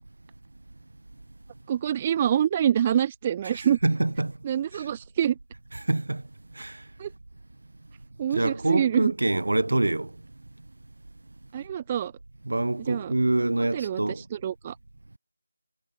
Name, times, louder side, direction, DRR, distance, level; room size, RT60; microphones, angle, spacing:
voice 1, 1.7-3.8 4.4-5.4 7.0-7.1 8.2-9.1 11.5-12.1 12.9-13.1 13.7-14.0 14.3-14.7, right 9 dB, 15° right, 0.4 m, -25 dB
voice 2, 3.4-4.3 4.7-4.9 5.7-6.2 6.6-6.8 8.3-10.1 12.4-14.2, right 2 dB, 60° right, 0.7 m, -26 dB
figure-of-eight pair, 165°, 0 cm